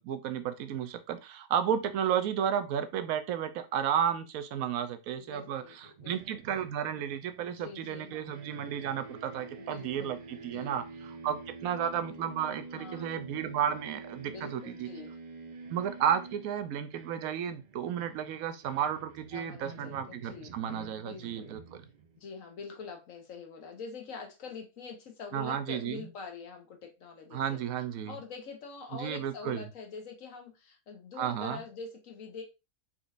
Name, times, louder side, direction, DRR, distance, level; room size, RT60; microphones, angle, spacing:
voice 1, 0.0-10.8 11.2-14.9 15.7-21.6 25.3-26.1 27.3-28.1 28.9-29.7 31.2-31.6, right 9 dB, 85° right, 10 dB, 1.1 m, -33 dB
voice 2, 5.2-6.4 7.5-8.3 9.6-10.8 12.7-13.1 14.2-15.2 19.3-21.5 22.2-27.6 28.0-32.4, left 5 dB, 70° left, 3 dB, 1.4 m, -45 dB
sound 1, 5.8-8.0 8.3-22.2, right 4 dB, 70° right, 0.4 m, -48 dB
4.5 x 4.1 x 2.5 m, 0.26 s
omnidirectional pair, 1.4 m